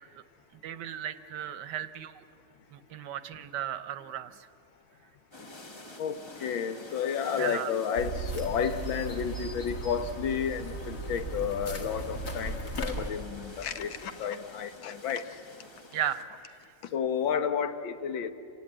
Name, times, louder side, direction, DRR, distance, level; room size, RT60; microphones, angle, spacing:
voice 1, 0.6-2.2 2.7-4.5 7.4-7.7 15.9-16.2, right 10 dB, 70° right, 13 dB, 1.2 m, -35 dB
sound 1, 5.3-16.2, left 2 dB, 25° left, 0.6 m, -49 dB
voice 2, 6.0-15.4 16.8-18.3, left 7 dB, 80° left, 10 dB, 1.8 m, -31 dB
sound 2, 7.9-13.1, right 2 dB, 45° left, 2.3 m, -36 dB
28.0 x 17.0 x 8.8 m, 2.7 s
omnidirectional pair, 2.1 m